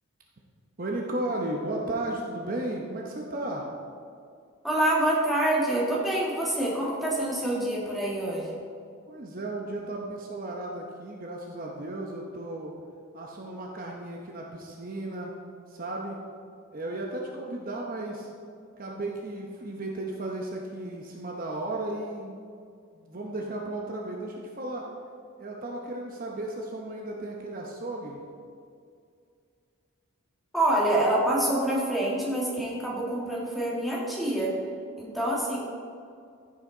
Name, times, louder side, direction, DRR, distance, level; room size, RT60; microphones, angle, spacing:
voice 1, 0.8-3.7 9.1-12.7 13.1-15.3 15.7-16.2 16.7-18.3 18.8-22.4 22.9-24.9 25.4-28.2, right 1 dB, 40° right, -1 dB, 0.8 m, -34 dB
voice 2, 4.6-8.6 30.5-34.5 35.0-35.6, right 1 dB, ahead, -6 dB, 1.7 m, -26 dB
14.5 x 5.7 x 3.9 m, 2.3 s
head